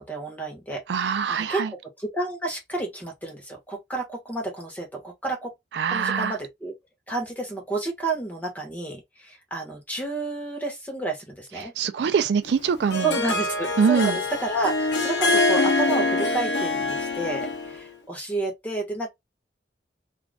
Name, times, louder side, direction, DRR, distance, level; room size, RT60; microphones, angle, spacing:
voice 1, 0.0-1.7 2.0-5.5 5.9-6.7 7.1-11.7 13.0-19.1, right 2 dB, 10° left, 1.0 m, -30 dB
voice 2, 0.9-1.7 5.7-6.4 11.6-13.1 13.8-14.2, right 6 dB, 75° right, 0.4 m, -23 dB
Harp, 12.5-17.8, left 3 dB, 85° left, 0.7 m, -24 dB
2.5 x 2.3 x 3.3 m
head